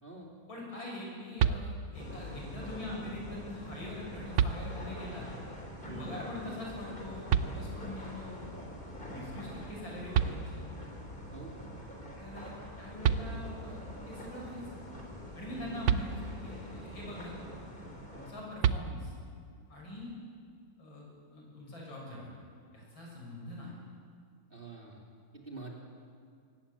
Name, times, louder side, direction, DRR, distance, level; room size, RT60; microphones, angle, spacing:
voice 1, 0.5-5.3 5.8-8.4 9.1-10.7 12.2-12.5 12.8-14.8 15.4-17.4 17.8-19.1 19.7-20.1 20.8-21.0 21.3-22.3 22.7-23.7, left 2 dB, 85° left, -2 dB, 7.6 m, -43 dB
sound 1, 1.4-2.1 3.7-3.8 4.3-5.1 7.3-8.1 9.8-9.9 10.1-11.0 12.7-12.8 13.0-13.8 15.8-16.7 18.6-19.4, right 8 dB, 75° right, 1.5 m, -30 dB
sound 2, 1.9-18.3, equal, 25° left, 4.0 m, -45 dB
voice 2, 5.9-6.2 11.3-11.6 15.5-15.8 24.5-25.0 25.3-25.8, right 3 dB, 25° right, -1 dB, 3.2 m, -46 dB
23.0 x 18.5 x 8.5 m, 2.1 s
omnidirectional pair, 2.1 m